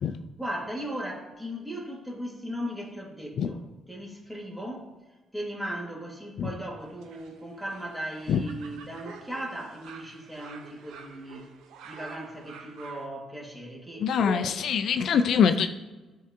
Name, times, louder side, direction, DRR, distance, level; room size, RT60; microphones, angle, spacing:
voice 1, 0.4-3.6 3.9-4.9 5.3-11.5 11.8-14.5, equal, 5° right, -2 dB, 1.9 m, -37 dB
sound 1, 6.8-13.1, right 6 dB, 90° right, 0.7 m, -49 dB
voice 2, 14.0-15.7, left 7 dB, 70° left, 9 dB, 0.4 m, -24 dB
10.5 x 3.7 x 2.8 m, 1.2 s
cardioid pair, 90°, 0 cm